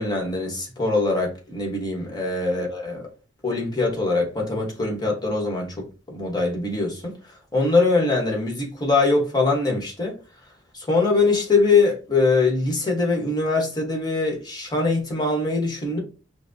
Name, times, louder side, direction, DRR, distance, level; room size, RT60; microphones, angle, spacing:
voice 1, 0.0-3.0 3.4-7.1 7.5-10.1 10.7-16.0, left 3 dB, 20° left, 1.1 m, -22 dB
5.8 x 2.0 x 2.7 m
head